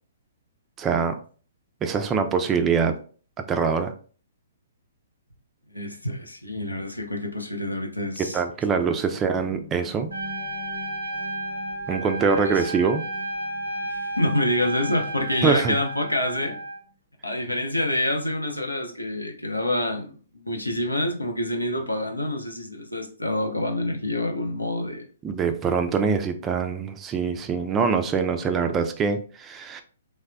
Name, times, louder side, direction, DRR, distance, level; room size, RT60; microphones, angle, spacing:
voice 1, 0.8-1.2 1.8-3.0 3.5-3.9 8.3-10.1 11.9-13.0 15.4-15.8 25.2-29.8, right 5 dB, 20° right, 0.3 m, -24 dB
voice 2, 5.7-8.4 12.4-12.7 13.9-16.6 17.2-25.1, left 1 dB, 90° left, 0.6 m, -27 dB
sound 1, 9.3-16.9, right 1 dB, 20° left, 0.7 m, -46 dB
Trumpet, 10.1-16.8, right 1 dB, 80° right, 0.6 m, -33 dB
3.2 x 2.1 x 2.4 m
figure-of-eight pair, 120°, 0 cm